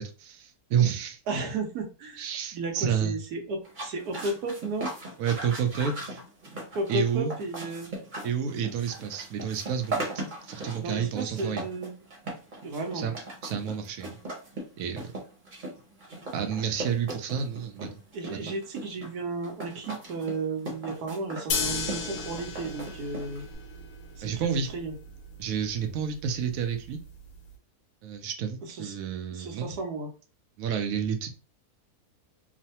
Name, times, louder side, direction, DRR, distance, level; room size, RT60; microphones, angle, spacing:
voice 1, 0.0-1.2 2.2-3.2 5.2-6.2 6.9-7.3 8.2-11.6 12.9-13.2 13.4-14.1 14.8-15.1 16.3-18.0 18.3-18.5 24.2-24.7 25.4-27.0 28.0-29.7 30.6-31.3, right 7 dB, 70° right, 6 dB, 0.9 m, -30 dB
voice 2, 1.3-2.3 2.5-4.9 6.7-7.9 10.7-11.9 12.6-13.1 18.1-23.4 24.2-24.9 28.6-29.0 29.3-30.1, right 3 dB, 85° right, 4 dB, 1.3 m, -34 dB
sound 1, 3.6-23.5, right 2 dB, 40° right, 0.9 m, -39 dB
sound 2, 21.5-27.5, left 4 dB, 75° left, 1.0 m, -36 dB
3.1 x 2.1 x 2.8 m, 0.35 s
omnidirectional pair, 1.6 m